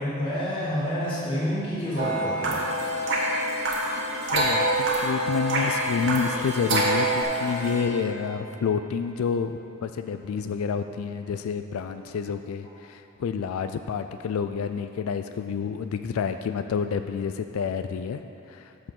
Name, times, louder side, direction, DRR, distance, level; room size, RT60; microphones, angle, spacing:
voice 1, 0.0-2.6, equal, 25° left, -12 dB, 1.6 m, -28 dB
sound 1, 2.0-7.2, right 1 dB, 60° right, 1.5 m, -26 dB
sound 2, 2.4-10.3, right 2 dB, 35° right, 1.6 m, -39 dB
voice 2, 4.3-18.2 18.5-18.7, left 6 dB, 80° left, 9 dB, 0.3 m, -29 dB
7.0 x 5.9 x 6.6 m, 3.0 s
head